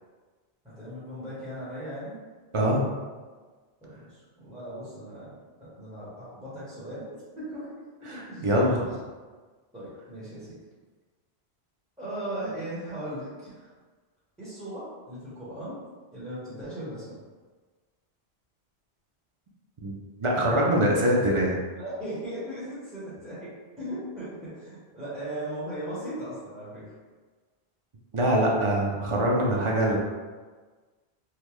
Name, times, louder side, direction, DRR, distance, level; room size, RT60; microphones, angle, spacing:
voice 1, 0.6-2.2 3.8-7.1 7.3-7.7 8.1-8.5 9.7-10.6 12.0-13.7 14.4-15.8 16.1-17.2 21.7-26.9, right 1 dB, 5° right, -12 dB, 1.1 m, -38 dB
voice 2, 8.1-8.9 19.8-19.9 20.2-21.6 28.1-30.0, right 1 dB, 45° right, -3 dB, 0.4 m, -23 dB
3.7 x 2.1 x 3.0 m, 1.4 s
omnidirectional pair, 1.1 m